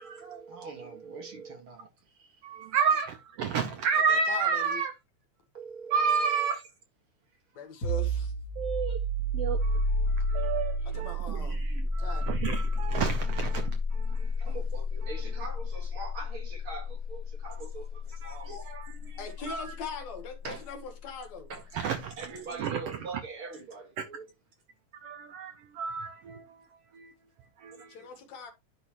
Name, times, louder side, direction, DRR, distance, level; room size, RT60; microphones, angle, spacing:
voice 1, 0.0-1.9 2.2-2.4 5.5-6.5 14.4-18.9 20.4-20.7 21.5-24.3 27.7-27.8, right 4 dB, 45° right, 2.6 m, -43 dB
voice 2, 2.4-4.9 5.9-6.6 8.6-9.0 9.3-14.3 18.2-19.2 19.5-19.6 21.7-23.0 24.0-24.1 25.0-26.6 26.9-27.1 27.6-27.9, right 6 dB, 75° right, 1.4 m, -31 dB
voice 3, 3.9-5.0 7.5-8.3 10.9-11.6 12.0-12.3 19.2-21.5 27.9-28.5, left 5 dB, 65° left, 2.6 m, -41 dB
sound 1, 7.8-19.2, left 1 dB, 35° left, 2.2 m, -30 dB
11.0 x 5.4 x 3.0 m
omnidirectional pair, 3.4 m